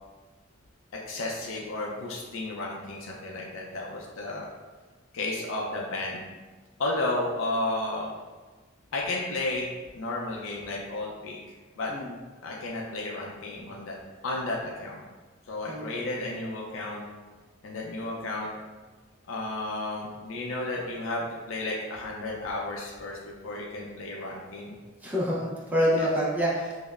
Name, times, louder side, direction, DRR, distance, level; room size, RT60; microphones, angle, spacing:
voice 1, 1.1-4.5 5.1-6.2 6.8-8.1 8.9-11.4 11.8-11.9 12.4-14.0 14.2-15.0 15.5-17.0 17.6-18.5 19.3-24.7 25.9-26.1, left 2 dB, 75° left, -3 dB, 0.5 m, -33 dB
voice 2, 15.7-16.1 25.0-26.7, equal, 10° right, -6 dB, 0.5 m, -27 dB
5.2 x 2.0 x 2.3 m, 1.3 s
head